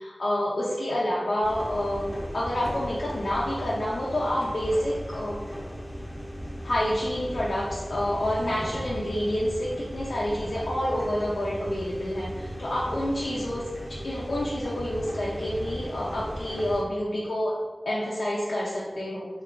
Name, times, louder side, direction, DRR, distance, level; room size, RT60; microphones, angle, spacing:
voice 1, 0.0-5.4 6.6-13.6 13.9-17.6 17.9-19.3, left 1 dB, 85° left, -7 dB, 0.5 m, -28 dB
sound 1, 1.4-16.8, equal, 20° left, 0.7 m, -37 dB
3.3 x 2.4 x 3.6 m, 1.3 s
cardioid pair, 40°, 0 cm